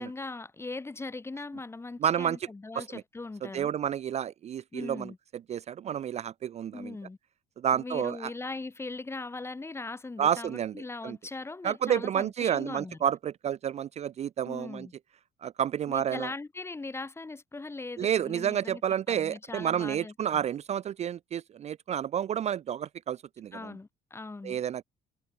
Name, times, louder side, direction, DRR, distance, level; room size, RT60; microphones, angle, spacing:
voice 1, 0.0-3.7 4.7-5.2 6.7-7.2 7.7-13.0 14.4-14.9 15.9-18.8 19.1-20.4 23.5-24.6, left 3 dB, 15° left, 1.0 m, -40 dB
voice 2, 2.0-2.4 2.8-3.0 3.5-5.1 5.5-7.0 7.6-8.3 10.2-10.7 11.0-11.2 11.6-14.9 15.4-16.3 18.0-23.8 24.4-24.8, right 9 dB, 40° right, 0.4 m, -30 dB
cardioid pair, 110°, 17 cm